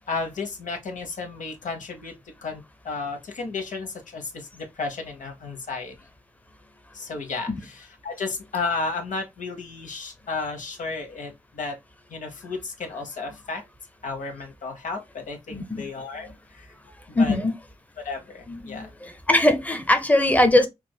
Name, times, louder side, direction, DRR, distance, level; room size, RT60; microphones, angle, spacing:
voice 1, 0.1-2.1 2.4-5.9 6.9-11.8 12.1-13.6 14.0-16.7 17.1-17.4 18.0-18.9, left 4 dB, 80° left, 0.9 m, -33 dB
voice 2, 15.5-15.8 16.2-16.3 17.1-17.5 18.5-20.7, left 1 dB, 10° left, 0.8 m, -21 dB
4.5 x 2.4 x 2.2 m
cardioid pair, 45°, 13 cm